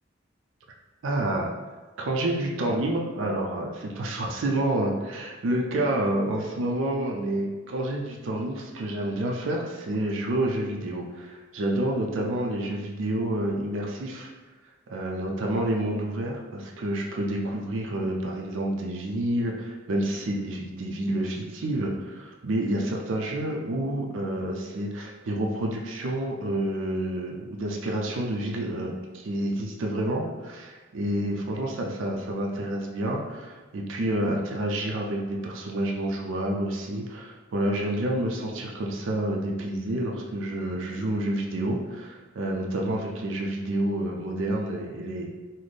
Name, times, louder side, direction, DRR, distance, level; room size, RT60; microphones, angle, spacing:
voice 1, 1.0-1.5 2.0-14.3 14.9-45.3, right 1 dB, 70° right, 0 dB, 0.4 m, -29 dB
4.0 x 2.1 x 3.2 m, 1.3 s
head